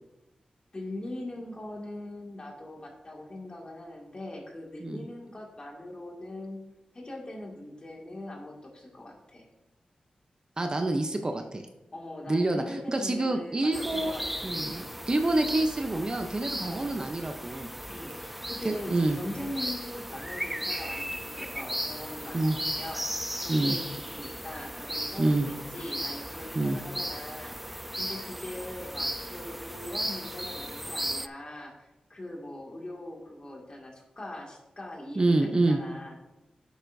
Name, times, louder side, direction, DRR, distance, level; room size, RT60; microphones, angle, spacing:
voice 1, 0.7-6.6 6.9-9.4 11.9-14.9 16.5-16.9 17.9-36.2, left 1 dB, 40° left, -1 dB, 2.2 m, -41 dB
voice 2, 10.6-11.7 12.3-14.1 14.4-17.7 18.6-19.2 22.3-22.6 23.5-23.8 25.2-25.5 26.5-26.8 35.2-35.8, right 2 dB, 35° right, 5 dB, 0.8 m, -27 dB
sound 1, 13.7-31.3, equal, 5° right, 0.4 m, -36 dB
10.5 x 8.1 x 2.7 m, 0.99 s
cardioid pair, 70°, 2 cm